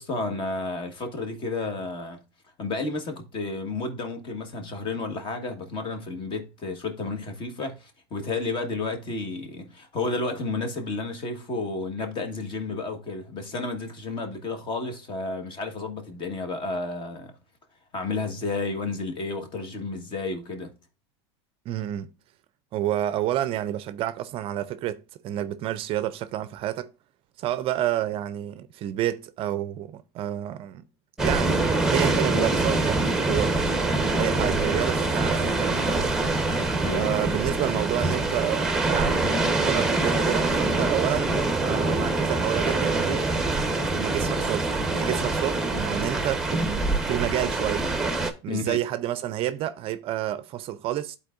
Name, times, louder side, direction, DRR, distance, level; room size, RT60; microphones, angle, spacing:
voice 1, 0.0-2.2 2.6-17.3 17.9-20.7 36.8-37.1 48.5-48.8, left 3 dB, 35° left, 1.4 m, -31 dB
voice 2, 21.7-22.1 22.7-26.9 27.4-30.9 31.2-33.6 34.2-36.1 37.0-41.3 41.6-43.3 43.9-47.9 48.4-51.2, right 13 dB, 40° right, 0.5 m, -29 dB
sound 1, 31.2-48.3, right 2 dB, 5° right, 0.9 m, -25 dB
11.5 x 4.2 x 2.5 m
supercardioid pair, 125°, 14 cm